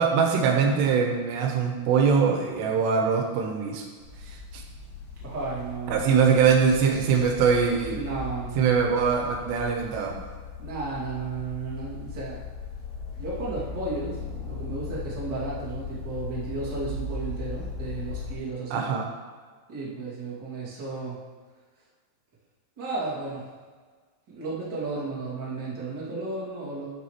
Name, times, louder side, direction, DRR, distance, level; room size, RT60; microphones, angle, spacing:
voice 1, 0.0-3.8 4.5-4.6 5.9-8.0 8.6-10.2 18.7-19.0, right 6 dB, 85° right, 1 dB, 3.2 m, -22 dB
sound 1, 4.0-18.3, left 4 dB, 80° left, 4.1 m, -38 dB
voice 2, 5.2-6.3 7.9-8.9 10.6-12.4 13.2-18.8 19.7-21.2 22.8-23.4 24.3-26.9, right 3 dB, 35° right, -7 dB, 2.2 m, -33 dB
12.5 x 5.6 x 3.1 m, 1.5 s
omnidirectional pair, 4.9 m